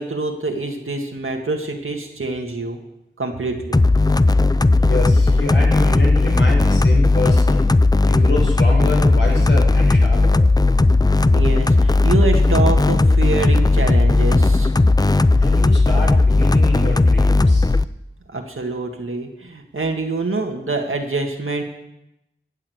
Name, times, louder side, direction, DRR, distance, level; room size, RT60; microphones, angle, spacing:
voice 1, 0.0-2.8 3.2-3.8 11.3-14.7 18.3-21.6, right 3 dB, 85° right, 3 dB, 1.8 m, -25 dB
sound 1, 3.7-17.8, left 2 dB, 20° left, 0.4 m, -15 dB
voice 2, 4.8-7.7 8.0-10.4 15.4-17.7, left 1 dB, 65° left, -1 dB, 4.9 m, -26 dB
16.0 x 6.6 x 7.9 m, 0.87 s
wide cardioid pair, 45°, 21 cm